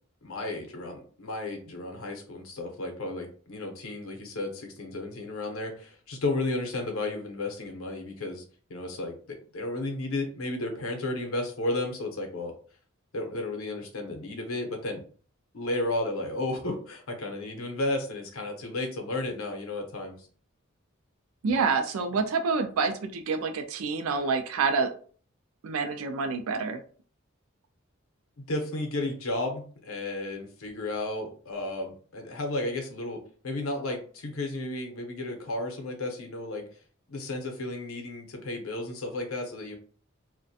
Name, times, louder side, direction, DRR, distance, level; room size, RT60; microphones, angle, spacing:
voice 1, 0.2-8.4 8.7-9.1 9.5-12.5 13.1-15.0 15.5-20.2 28.5-33.2 33.4-36.6 37.1-39.7, left 2 dB, 90° left, 3 dB, 0.6 m, -33 dB
voice 2, 21.4-24.9 25.6-26.8, right 4 dB, 85° right, 7 dB, 0.4 m, -27 dB
2.4 x 2.1 x 2.6 m, 0.43 s
head